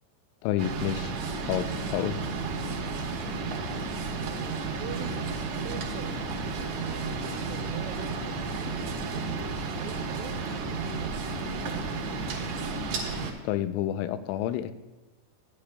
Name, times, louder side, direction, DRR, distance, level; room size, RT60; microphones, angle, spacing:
voice 1, 0.4-1.1 1.5-2.2 13.4-14.7, left 12 dB, 90° left, 12 dB, 3.0 m, -29 dB
sound 1, 0.6-13.3, right 3 dB, 70° right, 2.6 m, -32 dB
voice 2, 4.2-9.3 9.6-12.1, right 9 dB, 85° right, 3 dB, 2.5 m, -45 dB
15.5 x 9.8 x 2.2 m, 1.1 s
omnidirectional pair, 5.5 m